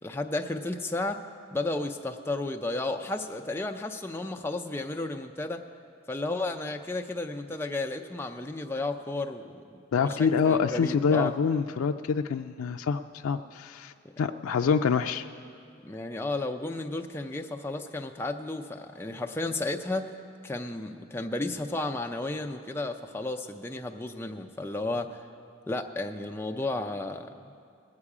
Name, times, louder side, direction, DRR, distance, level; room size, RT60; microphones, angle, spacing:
voice 1, 0.0-1.2 1.5-5.6 6.1-11.3 15.8-20.1 20.4-25.2 25.7-27.3, left 2 dB, 10° left, 3 dB, 0.5 m, -33 dB
voice 2, 9.9-15.2, left 6 dB, 80° left, 6 dB, 0.4 m, -26 dB
20.0 x 8.5 x 4.9 m, 2.3 s
head